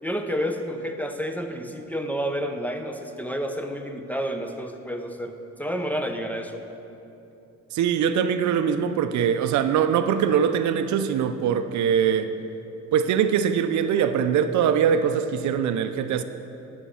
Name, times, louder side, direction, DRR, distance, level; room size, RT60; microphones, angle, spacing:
voice 1, 0.0-6.7, equal, 5° left, 5 dB, 0.7 m, -30 dB
voice 2, 7.7-12.3 12.9-16.2, right 8 dB, 70° right, 10 dB, 0.5 m, -22 dB
11.0 x 5.2 x 7.0 m, 2.9 s
cardioid pair, 90°, 30 cm